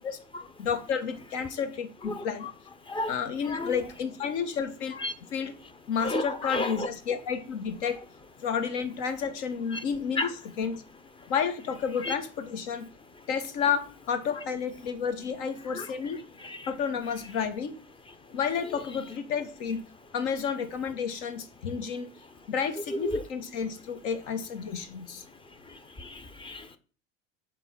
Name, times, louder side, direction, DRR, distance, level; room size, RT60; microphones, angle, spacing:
voice 1, 0.6-2.5 3.1-4.9 5.3-5.5 5.9-8.0 8.4-10.8 11.3-12.9 13.3-16.2 16.7-17.7 18.3-19.8 20.1-22.1 22.5-25.2, left 7 dB, 65° left, 9 dB, 1.4 m, -31 dB
voice 2, 2.1-2.5 2.9-3.1 3.4-3.8 5.0-5.1 6.0-6.9 9.7-9.8 10.2-10.3 11.2-11.3 12.0-12.1 15.7-15.9 16.4-16.7 18.7-18.8 22.9-23.2 25.5-26.8, left 2 dB, 15° left, 12 dB, 0.6 m, -33 dB
5.2 x 4.4 x 6.2 m, 0.39 s
supercardioid pair, 115°, 37 cm